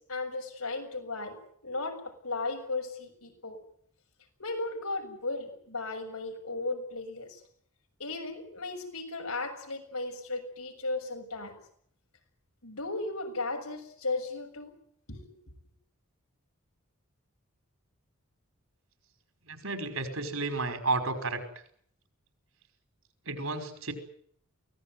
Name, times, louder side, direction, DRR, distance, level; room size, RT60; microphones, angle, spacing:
voice 1, 0.1-1.4 1.6-3.6 4.4-7.4 8.0-11.5 12.6-14.7 15.1-15.3, left 3 dB, 80° left, 3 dB, 7.0 m, -35 dB
voice 2, 19.4-21.4 23.3-23.9, right 3 dB, 65° right, 6 dB, 5.3 m, -32 dB
24.0 x 18.5 x 9.4 m, 0.64 s
head